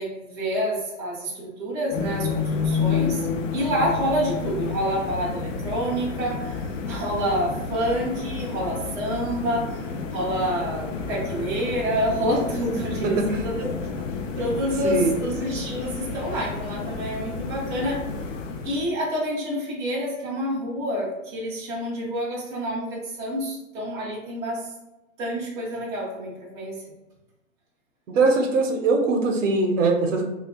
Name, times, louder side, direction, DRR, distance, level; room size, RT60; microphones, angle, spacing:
voice 1, 0.0-3.3 3.5-9.8 10.1-13.7 14.4-18.0 18.6-24.7 25.2-26.8, equal, 10° right, -6 dB, 0.3 m, -28 dB
sound 1, 1.9-18.9, left 5 dB, 70° left, 0.6 m, -30 dB
voice 2, 13.0-13.4 14.8-15.1 28.1-30.3, right 3 dB, 70° right, 3 dB, 0.8 m, -21 dB
2.8 x 2.4 x 3.4 m, 0.98 s
hypercardioid pair, 120°, 39 cm